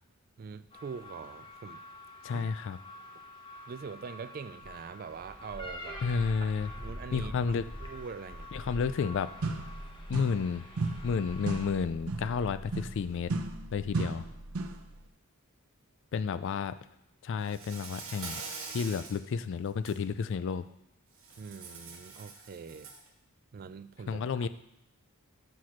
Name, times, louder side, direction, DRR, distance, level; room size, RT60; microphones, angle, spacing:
voice 1, 0.4-1.8 2.3-2.5 3.7-6.0 6.4-7.3 7.8-8.5 21.4-22.9 23.5-24.5, right 5 dB, 45° right, 13 dB, 0.3 m, -43 dB
sound 1, 0.7-11.7, left 1 dB, 25° left, 0.9 m, -45 dB
voice 2, 2.2-2.8 6.0-6.7 7.1-7.7 8.5-9.3 10.1-10.6 11.0-13.3 13.7-14.3 16.1-16.8 17.2-18.4 18.7-20.7 24.1-24.5, left 5 dB, 60° left, 13 dB, 0.3 m, -31 dB
sound 2, 9.4-10.5 10.8-14.9, right 3 dB, 80° right, 0.6 m, -35 dB
Insect, 17.4-19.2 19.7-19.9 21.2-23.1, right 4 dB, 65° right, 1.4 m, -44 dB
6.0 x 4.9 x 5.7 m, 0.83 s
head